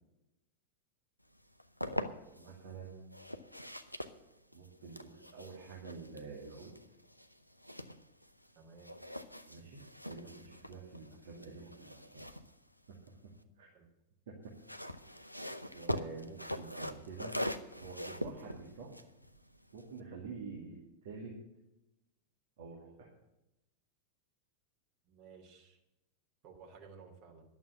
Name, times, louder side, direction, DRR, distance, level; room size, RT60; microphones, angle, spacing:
sound 1, 1.4-2.5 3.1-8.5 8.8-13.4 14.4-20.0, left 1 dB, 90° left, 0.7 m, -43 dB
voice 1, 1.8-3.1 4.5-6.7 9.5-12.3 13.6-13.7 14.3-14.4 15.7-17.4 17.8-18.9 19.7-21.3 22.6-23.1, right 4 dB, 60° right, -3 dB, 2.4 m, -48 dB
voice 2, 8.5-8.9 13.7-13.8 25.1-25.8 26.4-27.4, right 5 dB, 40° right, 2 dB, 2.8 m, -55 dB
11.5 x 7.2 x 9.5 m, 0.91 s
figure-of-eight pair, 90°, 0 cm